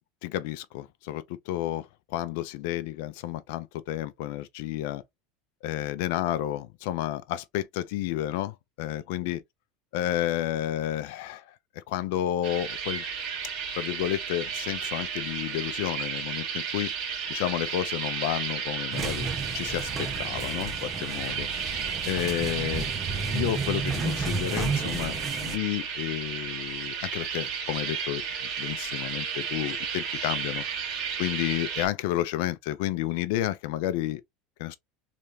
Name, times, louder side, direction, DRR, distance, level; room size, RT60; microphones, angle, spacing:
voice 1, 0.2-5.0 5.6-9.4 9.9-13.0 13.7-16.9 17.3-19.3 19.5-19.9 20.2-21.5 22.1-22.9 23.3-25.2 25.4-28.2 28.6-30.6 31.2-34.2 34.6-34.8, left 13 dB, 70° left, 0.5 m, -31 dB
sound 1, 12.4-31.9, right 7 dB, 55° right, 1.8 m, -33 dB
sound 2, 18.9-25.6, right 4 dB, 25° right, 0.9 m, -32 dB
3.3 x 2.6 x 3.1 m
supercardioid pair, 130°, 0 cm